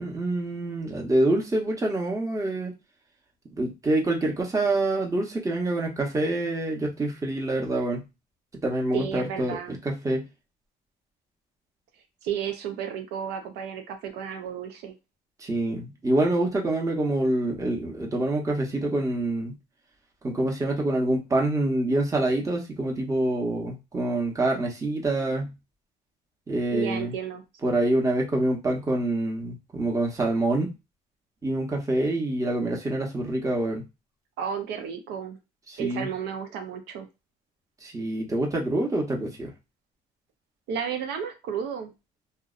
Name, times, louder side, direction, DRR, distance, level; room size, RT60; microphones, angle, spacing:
voice 1, 0.0-2.7 3.6-8.0 8.6-10.3 15.4-19.5 20.2-25.5 26.5-27.1 27.6-30.7 31.4-33.8 35.7-36.1 37.8-39.5, right 2 dB, 20° right, 0 dB, 0.8 m, -26 dB
voice 2, 8.9-9.8 12.2-14.9 26.7-27.4 34.4-35.4 35.8-37.1 40.7-41.9, right 8 dB, 90° right, 5 dB, 0.5 m, -32 dB
2.6 x 2.0 x 2.4 m, 0.25 s
cardioid pair, 110°, 17 cm